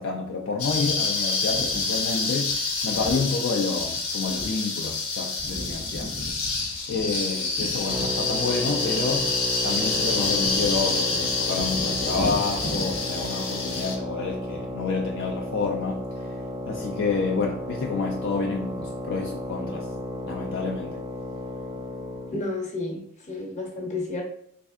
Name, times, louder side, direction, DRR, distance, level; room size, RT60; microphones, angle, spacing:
voice 1, 0.0-6.1 6.9-9.4 9.6-16.0 16.7-19.9 20.3-21.0, left 4 dB, 55° left, 0 dB, 0.4 m, -29 dB
sound 1, 0.6-14.0, left 3 dB, 75° left, 0.9 m, -27 dB
sound 2, 7.9-22.4, equal, 15° right, 0.4 m, -34 dB
voice 2, 22.3-23.0 23.3-24.2, left 2 dB, 35° left, 0 dB, 0.8 m, -31 dB
3.4 x 3.2 x 2.4 m, 0.67 s
head